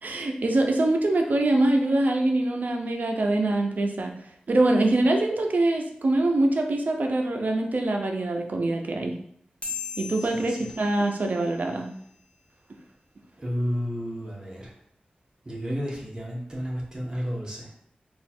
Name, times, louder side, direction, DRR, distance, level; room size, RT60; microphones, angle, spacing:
voice 1, 0.0-4.1 4.5-9.1 10.0-11.9, right 2 dB, 65° right, 3 dB, 0.5 m, -24 dB
sound 1, 9.6-12.5, left 6 dB, 40° left, 1.0 m, -40 dB
voice 2, 10.3-10.7 13.4-14.7 15.4-17.7, equal, 25° right, -3 dB, 1.0 m, -31 dB
3.1 x 2.4 x 4.2 m, 0.67 s
wide cardioid pair, 95°, 3 cm